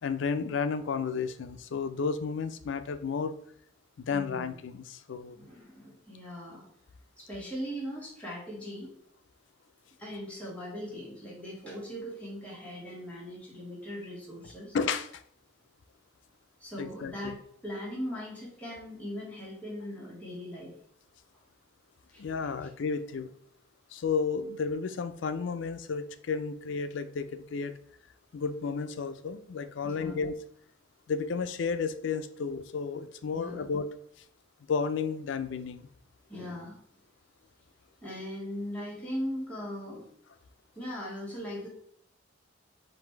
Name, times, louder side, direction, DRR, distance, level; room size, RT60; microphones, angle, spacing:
voice 1, 0.0-3.3 4.0-5.4 14.7-15.2 16.8-17.4 22.2-23.3 23.9-27.8 28.3-30.4 31.1-33.9 34.7-35.9, left 5 dB, 70° left, 12 dB, 0.4 m, -32 dB
voice 2, 4.1-4.5 5.3-6.7 7.2-8.9 10.0-14.7 16.6-20.7 22.1-22.5 29.8-30.2 33.3-33.6 36.3-36.8 38.0-40.0 40.7-41.7, equal, 5° left, -5 dB, 1.6 m, -39 dB
4.0 x 2.6 x 4.4 m, 0.67 s
head